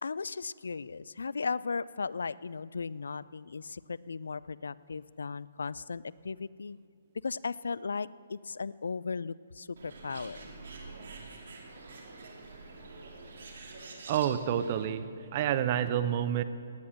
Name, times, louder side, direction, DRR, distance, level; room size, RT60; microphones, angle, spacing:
voice 1, 0.0-6.8 7.2-10.5, left 4 dB, 75° left, 20 dB, 0.3 m, -36 dB
Bird, 9.8-14.8, right 3 dB, 65° right, 2.5 m, -47 dB
voice 2, 14.1-16.4, right 10 dB, 40° right, 12 dB, 0.8 m, -29 dB
17.5 x 9.9 x 6.6 m, 2.4 s
figure-of-eight pair, 135°, 0 cm